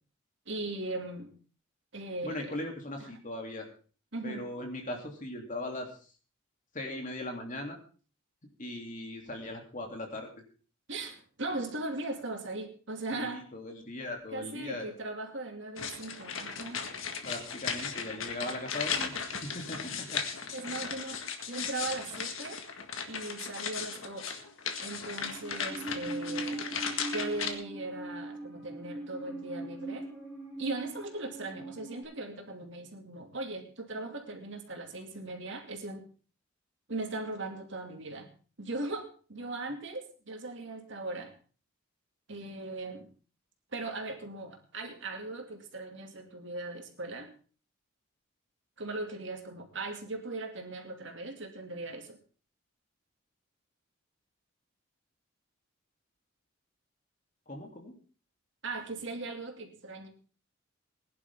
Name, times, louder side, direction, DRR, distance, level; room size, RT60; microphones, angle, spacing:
voice 1, 0.5-1.3 1.9-2.6 4.1-4.4 10.9-13.4 14.3-16.9 20.5-21.2 21.5-22.6 23.1-24.4 24.8-26.7 27.1-30.1 30.6-36.0 36.9-38.3 38.6-41.3 42.3-43.1 43.7-47.3 48.8-52.2 58.6-60.1, right 2 dB, 60° right, 3 dB, 2.6 m, -38 dB
voice 2, 2.2-3.7 4.2-5.9 6.7-7.8 8.6-10.3 13.1-14.9 17.2-19.1 19.4-20.2 57.5-57.9, left 1 dB, 40° left, 2 dB, 3.1 m, -39 dB
sound 1, 15.8-27.5, left 6 dB, 75° left, 1.9 m, -36 dB
Musical instrument, 25.2-32.0, right 2 dB, 10° left, 6.4 m, -41 dB
20.0 x 11.0 x 3.7 m, 0.38 s
head